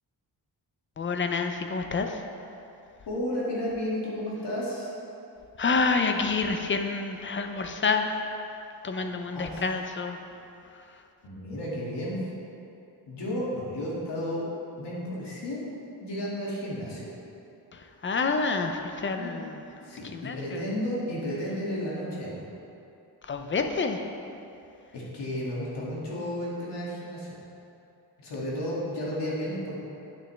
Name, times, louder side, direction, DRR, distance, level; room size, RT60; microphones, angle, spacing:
voice 1, 1.0-2.3 5.6-8.3 8.8-10.3 10.6-11.0 17.7-20.7 23.2-24.1 28.3-28.4, left 4 dB, 30° left, 5 dB, 0.5 m, -29 dB
voice 2, 3.1-4.9 9.3-9.5 11.2-12.2 13.1-14.4 14.8-15.6 16.0-17.1 19.1-19.3 19.8-22.4 24.9-27.3 28.2-29.8, equal, 75° left, -6 dB, 2.3 m, -32 dB
9.3 x 9.3 x 3.3 m, 2.8 s
wide cardioid pair, 175°, 42 cm